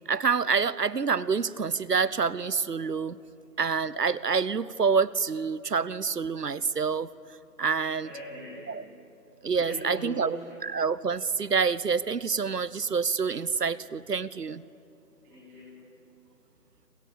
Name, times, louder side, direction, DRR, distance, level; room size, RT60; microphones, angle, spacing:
voice 1, 0.1-3.2 3.6-7.1 7.6-8.1 8.7-8.8 9.4-10.4 10.6-14.6, right 5 dB, 75° right, 20 dB, 0.9 m, -27 dB
voice 2, 8.0-8.9 9.5-10.6 15.2-15.9, equal, 5° right, -11 dB, 2.9 m, -41 dB
28.0 x 27.0 x 7.1 m, 2.7 s
figure-of-eight pair, 175°, 48 cm